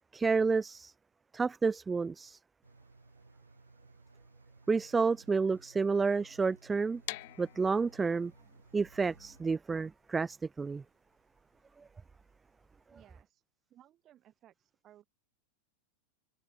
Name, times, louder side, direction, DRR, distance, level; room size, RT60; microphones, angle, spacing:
voice 1, 0.1-0.9 1.3-2.4 4.7-7.0 7.4-8.3 8.7-10.8, right 4 dB, 15° right, 0.4 m, -30 dB
Engine, 2.6-9.4, right 3 dB, 80° right, 8.0 m, -59 dB
sound 1, 7.0-12.9, left 24 dB, 50° left, 2.2 m, -48 dB
voice 2, 12.9-13.4 13.7-15.1, right 12 dB, 30° right, 7.3 m, -61 dB
figure-of-eight pair, 90°, 0 cm